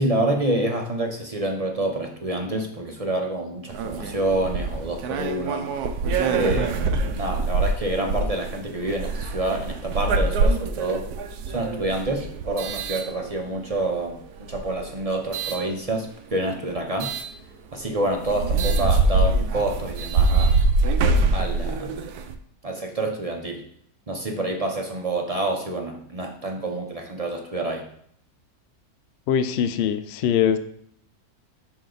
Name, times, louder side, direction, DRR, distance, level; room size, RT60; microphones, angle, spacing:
voice 1, 0.0-5.7 6.3-11.1 11.5-17.1 17.7-20.6 21.3-22.0 22.6-23.6 24.1-27.8, right 1 dB, 35° right, 1 dB, 0.6 m, -27 dB
sound 1, 3.7-13.7 14.4-15.6 17.0-17.3 17.8-17.9 18.2-22.4, right 3 dB, 85° right, 1.2 m, -24 dB
voice 2, 29.3-30.6, left 8 dB, 65° left, 10 dB, 0.6 m, -22 dB
6.2 x 4.9 x 3.9 m, 0.66 s
omnidirectional pair, 1.6 m